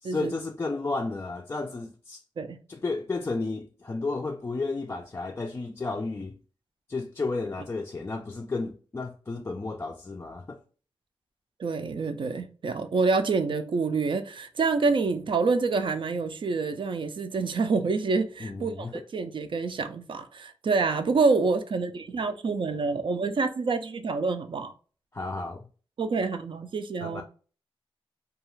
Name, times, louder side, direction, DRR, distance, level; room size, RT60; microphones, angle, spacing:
voice 1, 0.0-2.2 2.7-6.4 6.9-10.6 18.4-19.0 25.1-25.7 27.0-27.2, left 3 dB, 25° left, 0.3 m, -32 dB
voice 2, 11.6-18.9 19.1-24.7 26.0-27.2, right 4 dB, 60° right, 0.4 m, -27 dB
2.4 x 2.3 x 3.0 m
cardioid pair, 65°, 10 cm